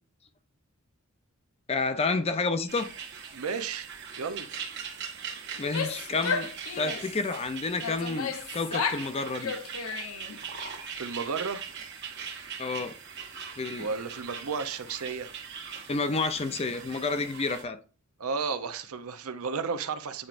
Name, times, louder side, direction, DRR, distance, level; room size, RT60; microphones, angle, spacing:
voice 1, 1.7-2.9 5.6-6.5 6.7-9.5 12.6-12.9 13.6-13.9 15.9-17.8, left 3 dB, 25° left, 0.5 m, -30 dB
sound 1, 2.7-17.6, right 6 dB, 55° right, 1.1 m, -41 dB
voice 2, 3.3-3.9 4.2-4.5 11.0-11.6 13.8-15.3 18.2-20.3, right 5 dB, 75° right, 0.6 m, -33 dB
Female speech woman speaking / Yell, 5.6-7.2 7.8-9.1 9.4-10.4, left 6 dB, 70° left, 0.7 m, -33 dB
8.6 x 4.5 x 2.5 m
head